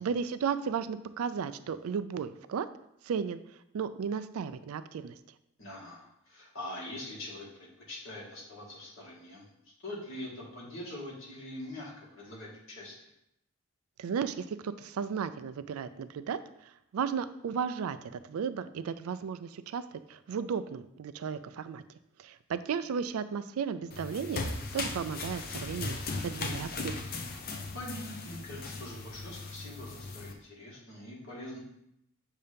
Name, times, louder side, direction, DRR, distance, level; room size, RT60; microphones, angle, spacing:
voice 1, 0.0-2.7 3.0-3.4 3.7-5.2 14.0-27.1, right 6 dB, 90° right, 12 dB, 0.4 m, -35 dB
voice 2, 5.6-9.4 9.8-13.1 27.7-31.6, left 1 dB, 65° left, -5 dB, 1.9 m, -43 dB
sound 1, 23.9-30.3, left 3 dB, 45° left, 0.6 m, -38 dB
6.7 x 2.8 x 5.0 m, 0.80 s
head